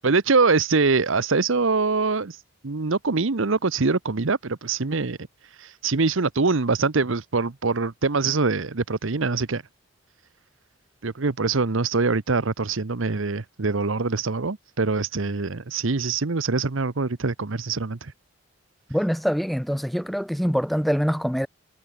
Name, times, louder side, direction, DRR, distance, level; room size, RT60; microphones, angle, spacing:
voice 1, 0.0-2.4 2.6-5.2 5.6-9.6 11.0-18.1, right 4 dB, 65° right, 0.9 m, -24 dB
voice 2, 18.9-21.5, equal, ahead, 1.5 m, -24 dB
head